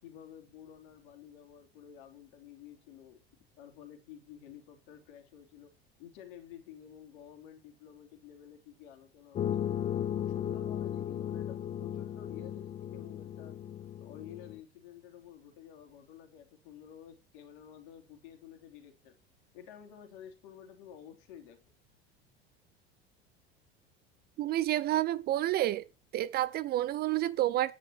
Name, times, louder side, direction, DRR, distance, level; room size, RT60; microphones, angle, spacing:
voice 1, 0.0-3.2 3.6-5.7 6.0-9.8 10.2-13.6 14.0-19.2 19.5-21.6, left 9 dB, 55° left, 3.0 m, -51 dB
sound 1, 9.3-14.6, left 10 dB, 20° left, 0.5 m, -36 dB
voice 2, 24.4-25.8 26.1-27.7, right 14 dB, 30° right, 0.6 m, -29 dB
10.5 x 9.7 x 4.5 m
figure-of-eight pair, 75°, 30 cm